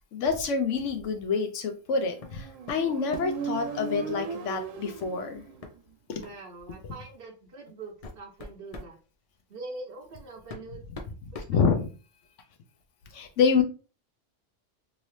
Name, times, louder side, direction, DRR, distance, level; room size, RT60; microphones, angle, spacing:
voice 1, 0.1-5.4 6.1-6.2 11.5-11.9 13.1-13.6, left 5 dB, 75° left, 7 dB, 0.9 m, -27 dB
Motorcycle, 2.1-5.8, right 5 dB, 85° right, 1.0 m, -37 dB
sound 1, 2.2-2.4 2.7-3.5 5.0-5.2 5.6-5.7 6.2-6.4 7.2-7.3 7.8-9.0 10.0-10.1 10.5-12.2, left 3 dB, 55° left, 0.4 m, -43 dB
voice 2, 6.1-9.0 9.5-10.8 11.3-11.9, right 3 dB, 55° right, 2 dB, 0.7 m, -43 dB
2.9 x 2.7 x 3.1 m, 0.34 s
omnidirectional pair, 1.3 m